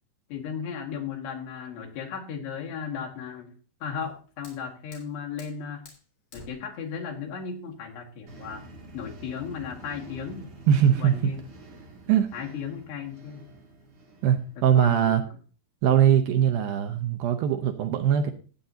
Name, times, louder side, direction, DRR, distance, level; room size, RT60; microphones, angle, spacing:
voice 1, 0.3-3.5 3.8-5.8 6.3-8.6 8.9-10.5 11.0-11.4 12.3-13.5 14.6-15.2, left 6 dB, 75° left, 0 dB, 4.0 m, -36 dB
Fire, 3.8-9.8, left 3 dB, 50° left, 4.6 m, -54 dB
sound 1, 8.3-14.7, right 2 dB, 35° right, 3.5 m, -47 dB
voice 2, 10.7-11.3 12.1-12.3 14.2-15.2 15.8-18.3, right 9 dB, 75° right, 6 dB, 2.3 m, -21 dB
15.5 x 9.1 x 2.8 m, 0.38 s
omnidirectional pair, 4.9 m